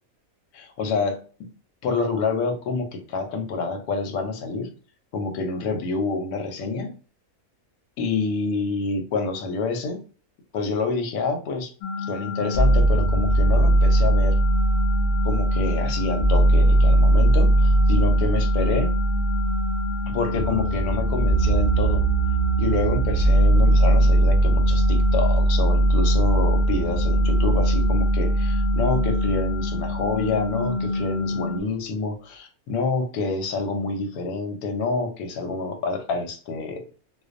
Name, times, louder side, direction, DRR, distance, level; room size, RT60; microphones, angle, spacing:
voice 1, 0.5-1.5 1.8-4.7 5.1-6.9 8.0-10.0 10.5-11.7 12.1-14.4 15.2-18.9 20.1-22.0 22.6-36.8, left 4 dB, 90° left, 5 dB, 1.1 m, -28 dB
sound 1, 11.8-31.6, left 3 dB, 60° left, 0.7 m, -29 dB
sound 2, 12.5-30.5, right 2 dB, 80° right, 0.4 m, -20 dB
2.4 x 2.1 x 2.4 m, 0.38 s
omnidirectional pair, 1.5 m